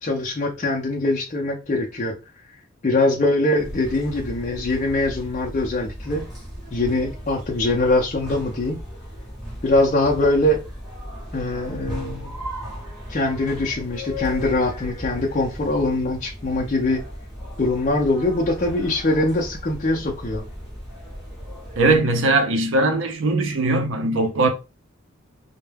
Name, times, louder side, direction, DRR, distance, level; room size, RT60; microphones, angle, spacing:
voice 1, 0.0-2.2 2.8-6.3 6.7-8.8 9.6-10.6 11.3-12.4 13.1-17.0 17.6-20.4, left 2 dB, 40° left, 0.5 m, -22 dB
sound 1, 3.5-22.0, equal, ahead, 1.0 m, -36 dB
voice 2, 21.8-24.5, right 2 dB, 75° right, 0.6 m, -20 dB
2.2 x 2.1 x 3.2 m
head